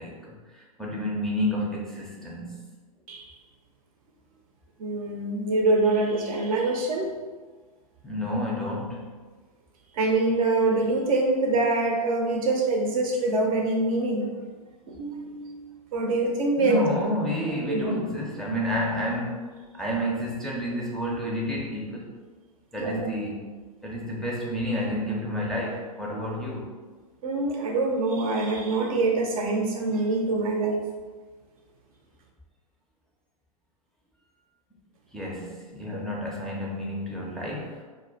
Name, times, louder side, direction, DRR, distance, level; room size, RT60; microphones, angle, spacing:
voice 1, 0.0-2.6 8.0-9.1 16.6-22.1 22.7-23.5 23.8-26.7 35.1-37.8, left 1 dB, ahead, -4 dB, 0.5 m, -30 dB
voice 2, 4.8-7.1 10.0-14.3 14.9-15.6 15.9-16.8 17.7-17.9 22.8-23.1 27.2-30.9 35.9-36.0, right 2 dB, 60° right, 1 dB, 0.6 m, -25 dB
2.2 x 2.1 x 3.8 m, 1.4 s
hypercardioid pair, 105°, 20 cm